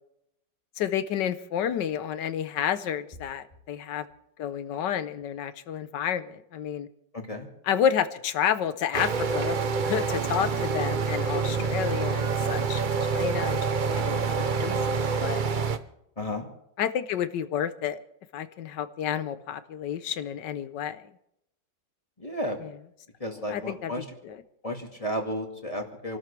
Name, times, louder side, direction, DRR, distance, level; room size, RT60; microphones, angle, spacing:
voice 1, 0.8-4.0 4.4-6.9 7.6-9.6 9.8-13.6 13.8-15.4 16.8-18.0 18.3-21.0 22.6-22.7 23.5-24.4, left 9 dB, 75° left, 12 dB, 1.5 m, -30 dB
voice 2, 7.1-7.5 16.2-16.5 22.2-22.6 23.2-24.0 24.6-26.2, equal, 20° left, 2 dB, 2.1 m, -33 dB
sound 1, 8.9-15.8, right 5 dB, 50° right, 0.5 m, -27 dB
28.0 x 13.0 x 3.3 m, 0.79 s
omnidirectional pair, 2.0 m